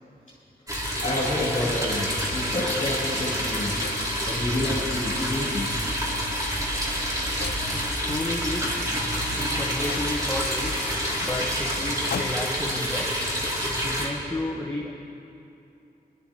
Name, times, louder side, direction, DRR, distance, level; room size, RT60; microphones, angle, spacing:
sound 1, 0.7-14.1, equal, 20° right, 2.5 m, -28 dB
voice 1, 1.0-3.8 4.2-5.8 11.2-11.3, left 1 dB, 45° left, -8 dB, 3.0 m, -29 dB
Wind, 1.0-12.2, right 1 dB, 75° right, 3.1 m, -41 dB
sound 2, 3.8-4.2 4.6-5.1 5.8-6.1 7.4-7.9 9.1-9.2 9.5-9.6 9.9-12.7, left 7 dB, 90° left, 0.5 m, -38 dB
voice 2, 7.5-8.8 9.4-10.7 11.2-13.1 13.8-14.9, left 2 dB, 10° left, -4 dB, 1.2 m, -32 dB
22.5 x 12.0 x 2.9 m, 2.8 s
wide cardioid pair, 85°, 17 cm